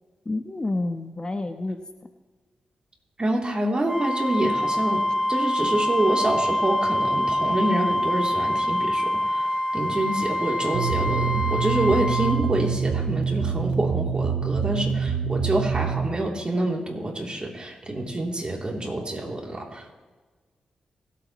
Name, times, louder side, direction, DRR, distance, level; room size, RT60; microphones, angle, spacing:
voice 1, 0.3-1.8, left 2 dB, 30° left, 7 dB, 1.0 m, -29 dB
voice 2, 3.2-5.0 5.3-19.9, right 1 dB, 35° right, 0 dB, 3.2 m, -27 dB
Wind instrument woodwind instrument, 3.9-12.4, left 1 dB, 15° right, 2.4 m, -25 dB
sound 1, 10.7-16.1, right 6 dB, 85° right, 1.2 m, -26 dB
24.5 x 8.5 x 3.2 m, 1.4 s
supercardioid pair, 45°, 3 cm